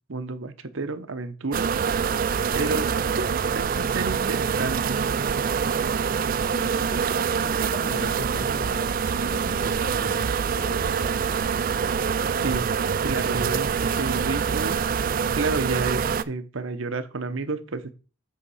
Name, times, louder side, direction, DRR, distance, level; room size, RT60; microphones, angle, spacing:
voice 1, 0.1-1.7 2.5-3.2 3.5-5.0 12.4-12.7 13.0-13.7 14.0-14.8 15.3-17.9, right 3 dB, 65° right, 0.8 m, -30 dB
sound 1, 1.5-16.2, right 6 dB, 40° right, 0.3 m, -25 dB
voice 2, 6.3-11.2, left 2 dB, 60° left, 1.9 m, -39 dB
8.3 x 3.7 x 5.5 m
head